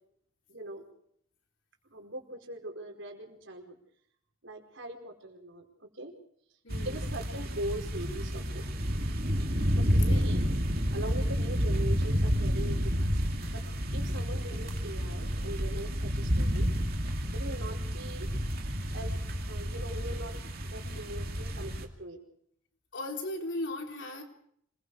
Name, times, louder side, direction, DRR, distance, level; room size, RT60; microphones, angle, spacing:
voice 1, 0.5-0.8 1.9-3.8 4.4-6.1 6.8-8.6 9.7-10.4 10.9-13.2 13.5-13.6 13.9-16.7 17.3-18.3 18.9-19.2 19.5-20.4 20.7-22.2, right 1 dB, 70° right, 2 dB, 4.8 m, -41 dB
voice 2, 6.6-7.0 10.1-10.2 14.5-14.6 22.9-24.2, left 1 dB, 65° left, 2 dB, 3.8 m, -37 dB
sound 1, 6.7-21.9, equal, 50° right, 2.5 m, -30 dB
26.5 x 22.0 x 4.9 m, 0.66 s
head